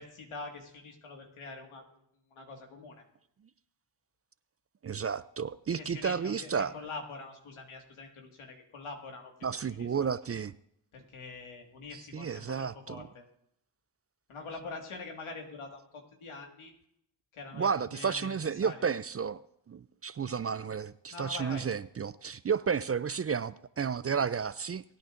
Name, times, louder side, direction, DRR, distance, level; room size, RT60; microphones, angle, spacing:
voice 1, 0.0-1.8 2.3-3.0 5.7-10.1 10.9-13.2 14.3-16.7 17.3-18.8 21.1-21.7, left 3 dB, 85° left, 2 dB, 2.0 m, -44 dB
voice 2, 4.8-6.7 9.4-10.5 11.9-13.1 17.5-19.4 19.7-24.8, right 6 dB, 30° right, 16 dB, 0.4 m, -32 dB
20.5 x 9.3 x 2.6 m, 0.74 s
supercardioid pair, 40°, 48 cm